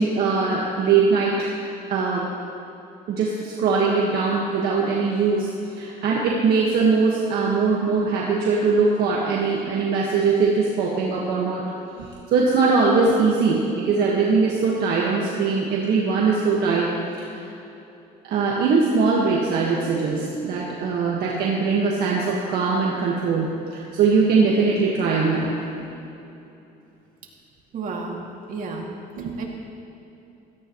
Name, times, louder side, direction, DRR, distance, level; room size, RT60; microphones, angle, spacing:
voice 1, 0.0-1.5 1.9-2.3 3.1-11.7 12.0-16.9 17.2-17.5 18.2-25.5 25.8-25.9 29.2-29.4, right 4 dB, 70° right, -3 dB, 1.6 m, -21 dB
voice 2, 27.7-28.2 28.5-28.9 29.4-29.5, right 4 dB, 55° right, -1 dB, 2.4 m, -31 dB
17.0 x 14.5 x 3.1 m, 2.9 s
cardioid pair, 110°, 17 cm